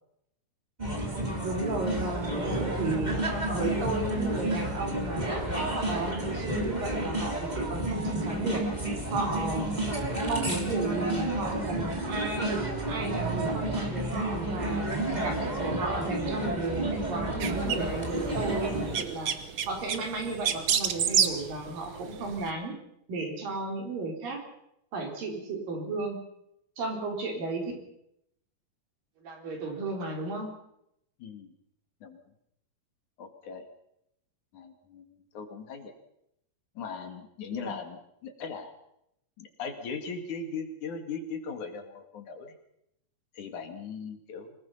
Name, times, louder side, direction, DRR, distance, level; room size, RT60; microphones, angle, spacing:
sound 1, 0.8-19.0, right 1 dB, 15° right, 2.9 m, -31 dB
voice 1, 1.4-3.2 3.5-8.7 9.1-9.7 10.2-14.9 15.2-19.3 19.7-22.8 23.1-24.4 24.9-26.2 26.8-27.7 29.2-30.5 37.5-37.7, right 2 dB, 80° right, 2 dB, 5.7 m, -34 dB
sound 2, 17.4-22.5, right 8 dB, 55° right, 1.6 m, -30 dB
voice 2, 31.2-31.5 32.0-32.2 33.2-33.7 34.5-35.9 36.8-38.7 39.4-42.5 43.3-44.5, left 5 dB, 65° left, 6 dB, 3.5 m, -39 dB
25.0 x 19.5 x 5.7 m, 0.78 s
omnidirectional pair, 3.9 m